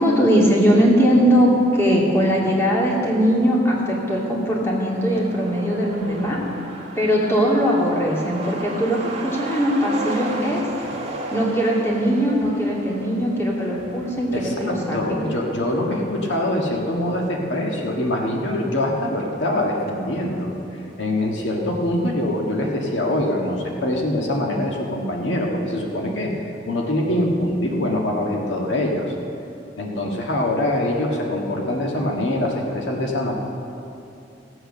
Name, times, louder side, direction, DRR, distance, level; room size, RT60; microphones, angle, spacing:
voice 1, 0.0-6.4 7.0-10.7 11.3-15.2, equal, 15° left, -4 dB, 2.3 m, -20 dB
Truck, 4.9-20.1 20.4-20.5 20.8-21.6 21.9-22.0 22.4-22.7, right 2 dB, 35° right, 1.6 m, -36 dB
voice 2, 14.3-20.5 21.0-26.3 26.7-29.1 29.8-33.3, left 1 dB, 80° left, 0 dB, 1.6 m, -24 dB
16.0 x 8.0 x 6.6 m, 2.7 s
head